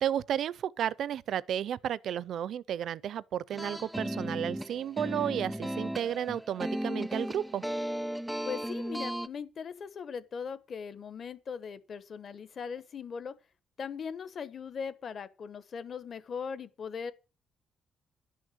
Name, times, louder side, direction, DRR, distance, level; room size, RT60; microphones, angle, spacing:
voice 1, 0.0-7.6, right 10 dB, 65° right, 0.5 m, -33 dB
sound 1, 3.5-9.3, equal, 5° right, 0.5 m, -35 dB
voice 2, 8.4-13.4 13.8-17.1, left 6 dB, 50° left, 1.1 m, -39 dB
11.0 x 6.4 x 7.6 m
cardioid pair, 120°, 0 cm